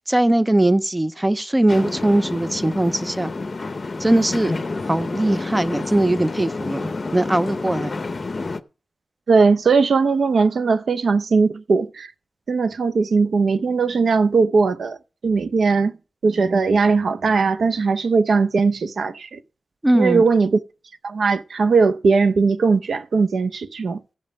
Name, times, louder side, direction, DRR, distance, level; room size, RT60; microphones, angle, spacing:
voice 1, 0.1-3.3 4.0-4.5 4.9-7.9 19.8-20.2, right 1 dB, 10° right, 0.4 m, -20 dB
sound 1, 1.7-8.6, left 3 dB, 35° left, 0.6 m, -29 dB
voice 2, 9.3-12.1 12.5-15.0 15.2-15.9 16.2-19.4 19.9-20.6 21.0-24.0, right 4 dB, 65° right, 0.6 m, -19 dB
15.5 x 5.4 x 5.0 m
wide cardioid pair, 140°, 0 cm